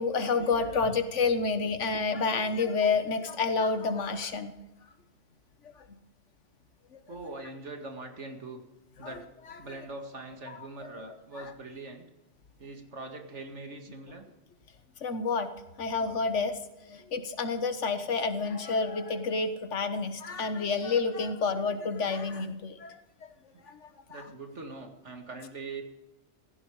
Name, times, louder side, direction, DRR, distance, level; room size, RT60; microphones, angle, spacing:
voice 1, 0.0-4.5 5.6-6.0 6.9-7.2 9.0-9.2 9.5-9.8 10.5-10.6 11.3-11.5 15.0-15.5 15.8-23.3 23.6-24.3, left 4 dB, 85° left, 9 dB, 1.6 m, -30 dB
voice 2, 7.1-8.6 9.0-9.2 9.6-12.1 12.6-14.3 23.5-23.7 24.1-25.8, right 3 dB, 80° right, 4 dB, 2.4 m, -42 dB
16.5 x 15.0 x 4.8 m, 1.0 s
omnidirectional pair, 1.2 m